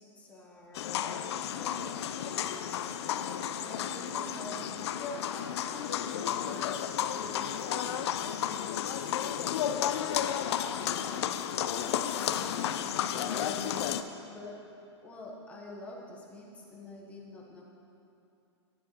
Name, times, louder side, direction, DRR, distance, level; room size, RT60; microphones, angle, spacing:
voice 1, 0.0-2.0 2.2-10.1 10.7-12.8 13.2-14.6 15.0-17.6, left 2 dB, 10° left, -3 dB, 0.9 m, -47 dB
sound 1, 0.7-14.0, left 9 dB, 65° left, 0.4 m, -32 dB
9.8 x 9.3 x 2.8 m, 2.8 s
hypercardioid pair, 155°, 15 cm